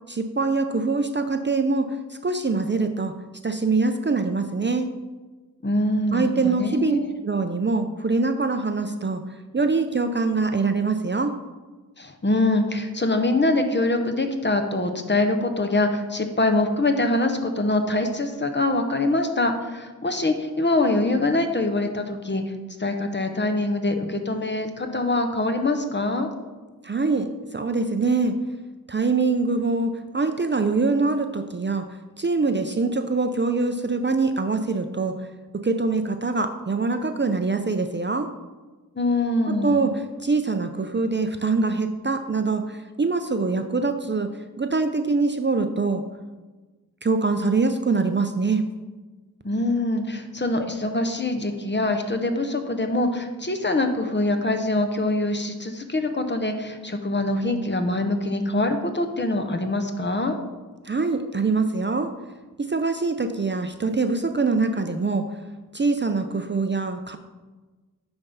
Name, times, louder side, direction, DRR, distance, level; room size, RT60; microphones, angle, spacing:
voice 1, 0.1-3.1 3.4-4.9 6.1-7.0 7.2-9.2 9.5-11.3 26.8-28.3 28.9-31.8 32.2-35.3 35.6-38.3 39.5-44.3 44.6-46.0 47.0-48.6 60.8-62.1 62.6-65.2 65.7-67.2, right 3 dB, 30° right, 7 dB, 0.5 m, -24 dB
voice 2, 5.6-7.1 12.0-22.4 22.8-26.3 39.0-39.9 49.4-60.4, left 2 dB, 30° left, 6 dB, 0.8 m, -24 dB
9.1 x 3.5 x 5.5 m, 1.3 s
wide cardioid pair, 70°, 35 cm